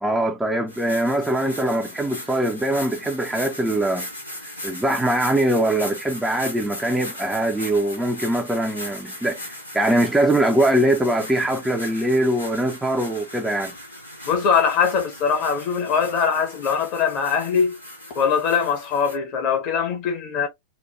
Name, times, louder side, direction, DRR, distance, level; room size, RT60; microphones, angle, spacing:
voice 1, 0.0-4.1 4.4-13.7, right 1 dB, 5° right, 0.5 m, -22 dB
sound 1, 0.7-19.2, left 1 dB, 85° left, 1.1 m, -38 dB
voice 2, 14.3-17.8 18.1-20.5, left 6 dB, 45° left, 1.0 m, -22 dB
3.1 x 2.1 x 2.3 m
figure-of-eight pair, 90°, 0 cm